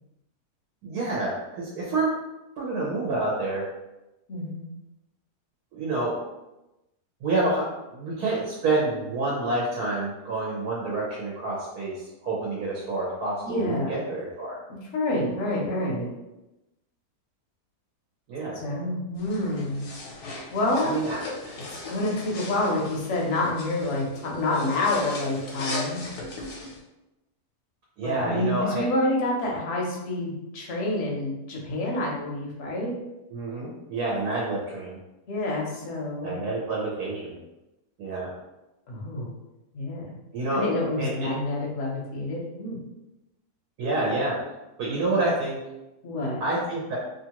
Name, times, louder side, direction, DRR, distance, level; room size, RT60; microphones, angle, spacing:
voice 1, 0.8-2.2 2.6-3.6 5.7-6.2 7.2-14.6 18.3-18.6 20.8-21.2 21.4-21.6 28.0-28.9 33.3-35.0 36.2-37.4 38.0-38.3 40.3-40.6 41.0-41.3 43.8-44.4 44.8-45.6 46.4-47.0, right 2 dB, 75° right, -4 dB, 1.2 m, -28 dB
voice 2, 4.3-4.6 13.4-13.9 14.7-16.1 18.5-19.8 20.5-21.0 21.9-26.0 28.0-32.9 35.3-36.4 38.9-39.3 39.7-40.1 40.5-42.8 46.0-46.4, left 2 dB, 55° left, -2 dB, 0.9 m, -28 dB
sound 1, 19.2-26.8, left 2 dB, 80° left, 1.2 m, -38 dB
3.0 x 2.4 x 2.9 m, 0.98 s
omnidirectional pair, 1.7 m